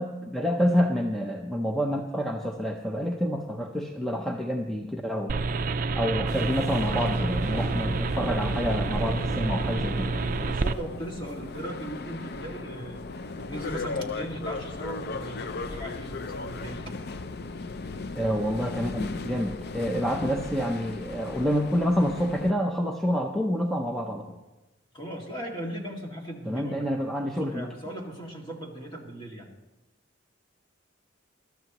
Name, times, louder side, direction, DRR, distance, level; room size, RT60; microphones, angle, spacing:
voice 1, 0.0-5.4 5.9-10.1 18.1-24.4 26.5-27.7, equal, ahead, 1 dB, 0.7 m, -28 dB
sound 1, 5.3-10.7, right 3 dB, 45° right, 0.5 m, -28 dB
sound 2, 6.3-22.5, left 3 dB, 55° left, 0.6 m, -37 dB
voice 2, 10.4-13.0 13.5-17.0 24.9-26.9 27.2-29.5, right 1 dB, 25° left, 0 dB, 2.2 m, -38 dB
22.0 x 13.0 x 3.0 m, 1.1 s
head